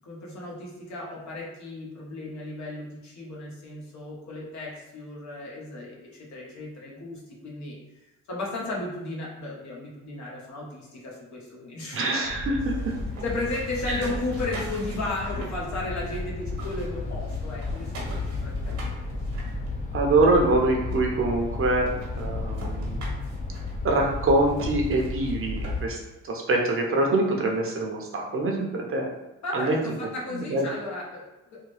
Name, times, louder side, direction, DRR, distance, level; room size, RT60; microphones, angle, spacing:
voice 1, 0.0-7.7 8.3-12.0 13.2-19.1 29.4-31.2, left 2 dB, 65° left, -4 dB, 1.2 m, -35 dB
voice 2, 11.9-12.7 13.9-14.0 19.9-21.9 22.1-23.0 23.8-29.1 29.5-29.8 30.3-30.6, right 2 dB, 45° right, 0 dB, 0.7 m, -24 dB
sound 1, 12.2-25.8, left 3 dB, 25° left, 0.6 m, -33 dB
sound 2, 12.5-16.2 16.5-20.2 20.9-21.0 21.4-21.5 21.8-26.1, right 2 dB, 75° right, 1.1 m, -43 dB
3.6 x 2.1 x 3.3 m, 0.99 s
cardioid pair, 90°, 30 cm